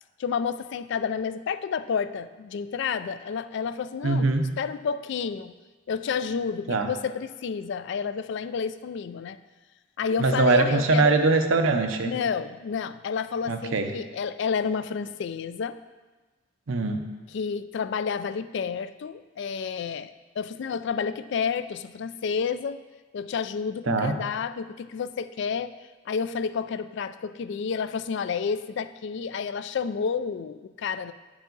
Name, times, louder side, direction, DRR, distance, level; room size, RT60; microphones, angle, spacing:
voice 1, 0.2-4.3 4.6-5.5 5.9-9.4 10.0-11.1 12.0-15.8 17.3-22.8 23.1-25.7 26.1-31.1, left 6 dB, 60° left, 13 dB, 0.3 m, -30 dB
voice 2, 4.0-4.5 6.7-6.9 10.2-12.1 13.5-13.9 16.7-17.0 23.9-24.1, right 3 dB, 90° right, 6 dB, 0.7 m, -22 dB
10.0 x 4.8 x 3.9 m, 1.3 s
head